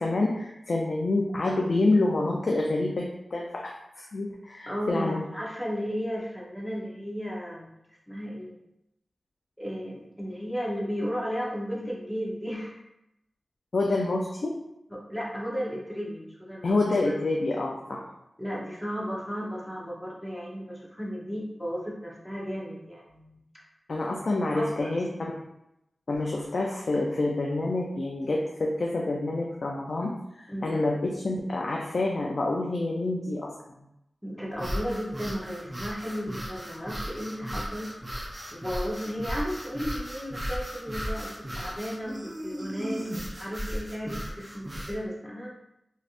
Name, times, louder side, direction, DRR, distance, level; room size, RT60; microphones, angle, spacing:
voice 1, 0.0-5.2 13.7-14.5 16.6-18.0 23.9-25.1 26.1-33.5, left 2 dB, 65° left, -1 dB, 0.4 m, -27 dB
voice 2, 4.7-7.7 8.1-8.6 9.6-12.8 14.9-16.7 18.4-23.6 24.5-24.9 30.5-30.8 34.2-38.0 38.5-45.5, equal, 5° left, -4 dB, 0.9 m, -34 dB
sound 1, 34.5-45.0, equal, 25° right, 0.6 m, -36 dB
3.2 x 2.7 x 2.5 m, 0.84 s
wide cardioid pair, 60°, 0 cm